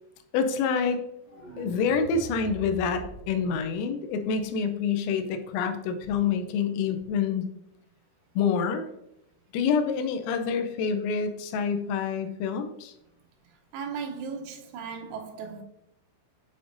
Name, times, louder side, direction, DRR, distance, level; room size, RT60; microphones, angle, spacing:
voice 1, 0.3-1.0 1.6-7.5 8.4-8.9 9.5-12.9, left 6 dB, 85° left, 3.3 m, -27 dB
sound 1, 1.3-4.3, right 1 dB, 45° right, 0.8 m, -43 dB
voice 2, 13.7-15.6, right 6 dB, 90° right, 3.6 m, -36 dB
8.4 x 5.1 x 2.5 m
omnidirectional pair, 5.9 m